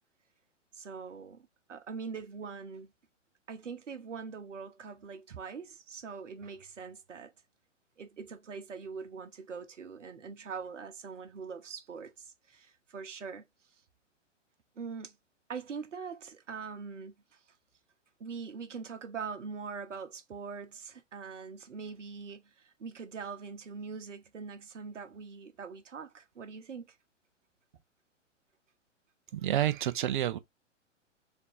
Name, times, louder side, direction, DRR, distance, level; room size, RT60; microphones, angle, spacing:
voice 1, 0.7-2.9 3.5-7.3 8.0-13.4 13.7-13.8 14.8-15.1 15.5-17.4 18.2-26.9, right 5 dB, 75° right, 0.9 m, -43 dB
voice 2, 29.3-30.4, right 12 dB, 40° right, 0.5 m, -29 dB
3.7 x 2.5 x 3.5 m
figure-of-eight pair, 115°, 38 cm